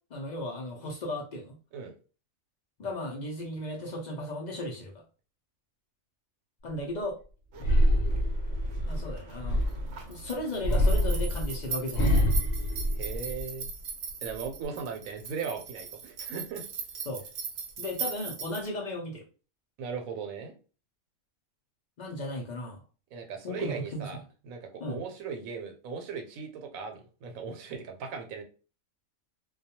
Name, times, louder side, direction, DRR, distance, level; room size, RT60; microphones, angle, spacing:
voice 1, 0.1-1.6 2.8-5.0 6.6-7.2 8.9-9.6 10.1-12.3 17.1-17.2 17.8-19.2 22.0-22.8 23.4-24.1 24.8-25.0, left 1 dB, 60° left, 0 dB, 0.4 m, -35 dB
sound 1, 7.5-18.7, right 6 dB, 65° right, 0.7 m, -40 dB
sound 2, 7.6-10.0 10.6-13.7 14.1-14.7, equal, 80° left, 1.1 m, -26 dB
voice 2, 13.0-13.7 14.2-16.7 19.8-20.5 23.1-24.2 24.4-28.4, right 5 dB, 85° right, 4 dB, 1.0 m, -38 dB
2.3 x 2.2 x 2.7 m, 0.36 s
omnidirectional pair, 1.4 m